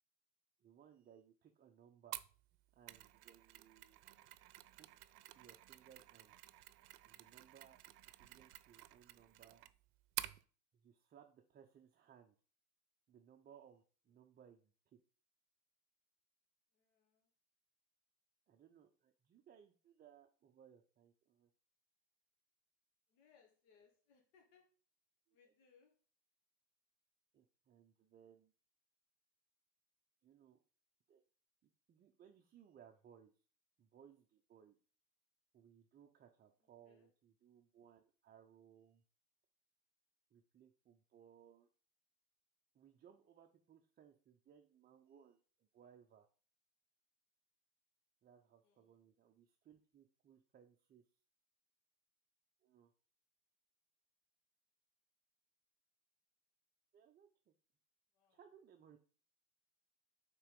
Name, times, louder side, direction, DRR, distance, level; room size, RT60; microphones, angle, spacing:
voice 1, 0.6-2.2 2.7-4.0 4.7-4.9 5.3-6.4 7.1-7.8 8.2-9.6 10.7-12.3 13.1-15.0 18.5-21.5 25.3-25.5 27.3-28.5 30.2-30.6 31.1-31.2 31.6-33.4 33.8-34.8 35.5-39.0 40.3-41.7 42.7-46.3 48.2-51.0 52.6-52.9 56.9-57.5 58.3-59.0, right 8 dB, 20° right, 3 dB, 0.5 m, -64 dB
Mechanisms, 2.1-10.4, right 16 dB, 75° right, 0.6 m, -51 dB
voice 2, 16.7-17.3 23.1-24.7 25.3-25.9 36.8-37.1 48.6-48.9 58.1-58.4, left 6 dB, 65° left, 0 dB, 1.7 m, -71 dB
5.6 x 3.8 x 5.2 m, 0.41 s
hypercardioid pair, 105°, 46 cm